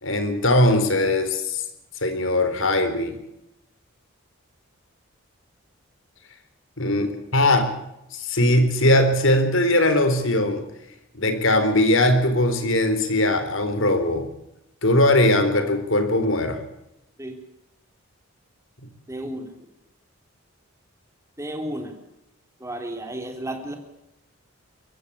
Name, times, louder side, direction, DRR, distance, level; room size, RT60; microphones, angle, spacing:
voice 1, 0.0-1.6 2.0-3.2 6.8-7.7 8.1-10.6 11.1-14.3 14.8-16.6, left 1 dB, 65° left, 8 dB, 4.0 m, -20 dB
voice 2, 19.1-19.5 21.4-22.0 22.6-23.7, right 1 dB, 15° right, 4 dB, 3.4 m, -32 dB
24.0 x 15.5 x 8.6 m, 0.86 s
head